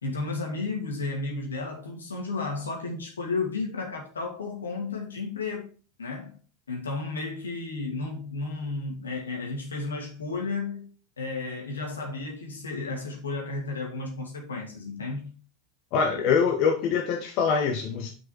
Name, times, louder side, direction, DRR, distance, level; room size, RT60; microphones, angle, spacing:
voice 1, 0.0-5.7 6.0-6.4 6.7-10.9 11.2-15.3, left 3 dB, 90° left, 2.3 m, -33 dB
voice 2, 15.9-18.1, left 6 dB, 55° left, 1.2 m, -24 dB
6.2 x 5.3 x 4.6 m
hypercardioid pair, 90°, 0 cm